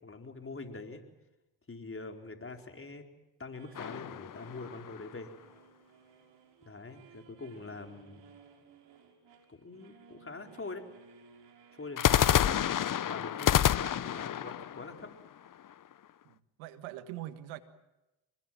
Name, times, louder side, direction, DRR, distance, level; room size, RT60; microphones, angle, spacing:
voice 1, 0.0-1.0 1.7-3.0 3.4-5.3 6.6-8.2 9.5-10.8 11.8-12.6 13.0-15.1, left 3 dB, 30° left, 4 dB, 4.5 m, -44 dB
sound 1, 3.5-13.3, right 6 dB, 65° right, 6.0 m, -59 dB
sound 2, 3.7-5.2 12.0-15.9, left 10 dB, 45° left, 0.9 m, -29 dB
voice 2, 16.3-17.6, right 14 dB, 90° right, 10 dB, 1.8 m, -43 dB
25.0 x 21.5 x 7.6 m, 0.98 s
supercardioid pair, 60°, 46 cm